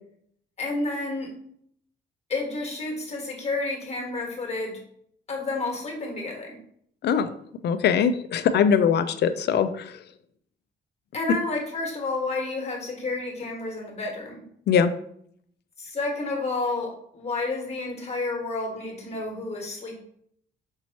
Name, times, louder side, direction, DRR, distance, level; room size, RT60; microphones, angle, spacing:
voice 1, 0.6-1.3 2.3-4.8 5.3-6.6 11.1-14.4 15.8-20.0, left 3 dB, 30° left, 0 dB, 1.4 m, -30 dB
voice 2, 7.6-9.9 14.7-14.9, left 7 dB, 55° left, 12 dB, 0.4 m, -21 dB
5.4 x 2.9 x 2.9 m, 0.67 s
cardioid pair, 90°, 20 cm